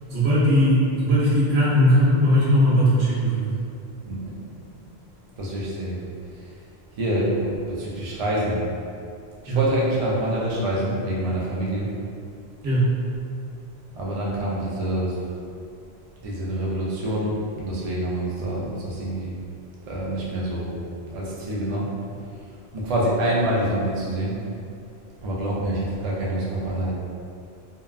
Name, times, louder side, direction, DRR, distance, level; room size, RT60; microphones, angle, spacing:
voice 1, 0.1-3.5 9.5-9.6 12.6-12.9, equal, 80° right, -9 dB, 1.1 m, -19 dB
voice 2, 4.0-4.4 5.4-6.0 7.0-8.6 9.4-12.0 13.9-15.5 16.2-19.4 19.9-22.0 22.7-24.5 25.2-26.9, right 1 dB, 50° right, -5 dB, 0.4 m, -26 dB
2.8 x 2.2 x 2.3 m, 2.4 s
omnidirectional pair, 1.1 m